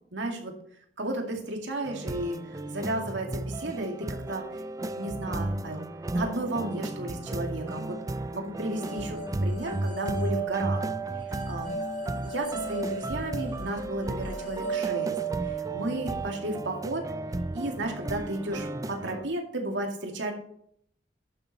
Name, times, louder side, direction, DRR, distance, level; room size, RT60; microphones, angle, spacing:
voice 1, 0.1-0.5 1.0-4.4 4.8-5.8 6.1-8.0 8.3-10.9 11.3-11.7 12.2-15.2 15.4-17.1 17.5-20.3, right 1 dB, 70° right, 2 dB, 2.3 m, -33 dB
sound 1, 1.9-19.3, right 2 dB, 20° right, 0.4 m, -34 dB
sound 2, 8.8-18.0, right 5 dB, 40° left, 2.7 m, -36 dB
11.5 x 7.2 x 4.2 m, 0.67 s
head